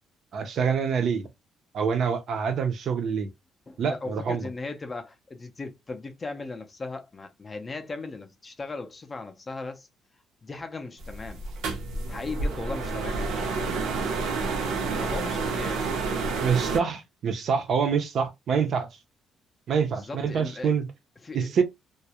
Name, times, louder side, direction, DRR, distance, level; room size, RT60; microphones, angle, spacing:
voice 1, 0.3-1.3 1.7-3.3 3.8-4.4 16.4-18.9 19.7-20.9 21.3-21.6, right 6 dB, 45° right, 0.4 m, -26 dB
voice 2, 3.7-9.9 10.4-11.4 12.1-13.6 15.0-15.9 19.9-20.7 21.2-21.5, left 3 dB, 20° left, 0.4 m, -38 dB
sound 1, 11.0-16.8, right 4 dB, 85° right, 0.6 m, -29 dB
2.3 x 2.0 x 2.8 m
cardioid pair, 175°, 0 cm